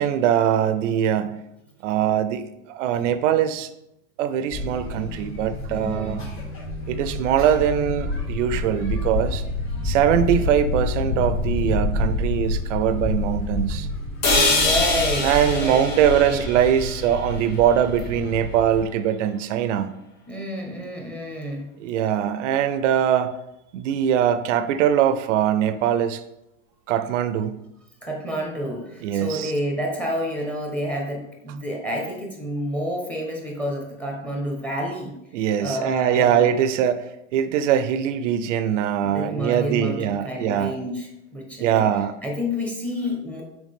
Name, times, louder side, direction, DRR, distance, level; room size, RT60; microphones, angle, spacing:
voice 1, 0.0-1.4 1.8-3.7 4.2-6.2 6.9-9.4 9.8-13.9 15.2-19.9 21.8-23.4 23.7-26.2 26.9-27.6 29.0-29.5 35.3-40.7 41.6-42.1, right 9 dB, 65° right, 11 dB, 0.6 m, -22 dB
sound 1, 4.5-18.8, left 2 dB, 30° left, 2.1 m, -28 dB
voice 2, 5.7-6.3 14.5-15.3 15.5-15.8 16.2-16.4 20.3-21.6 28.0-35.2 35.6-36.5 39.0-43.4, equal, 5° left, 0 dB, 1.2 m, -29 dB
sound 2, 14.2-18.2, left 3 dB, 45° left, 2.4 m, -25 dB
6.4 x 4.7 x 3.6 m, 0.86 s
supercardioid pair, 150°, 40 cm